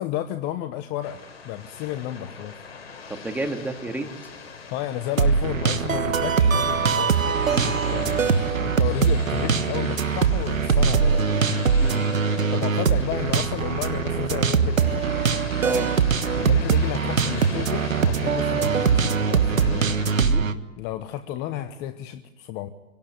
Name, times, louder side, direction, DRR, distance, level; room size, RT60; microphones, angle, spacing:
voice 1, 0.0-2.6 4.7-7.2 7.6-11.7 12.5-15.0 16.4-19.9 20.8-22.7, left 12 dB, 25° left, 11 dB, 1.0 m, -32 dB
sound 1, 1.0-20.3, left 5 dB, 60° left, 4.2 m, -41 dB
voice 2, 3.1-4.1 7.5-7.7 11.8-12.0 15.6-15.9 20.2-20.5, right 2 dB, 5° right, 4 dB, 2.1 m, -30 dB
sound 2, 5.2-20.5, right 6 dB, 85° right, 1.6 m, -22 dB
25.5 x 18.0 x 9.2 m, 1.1 s
hypercardioid pair, 130°, 39 cm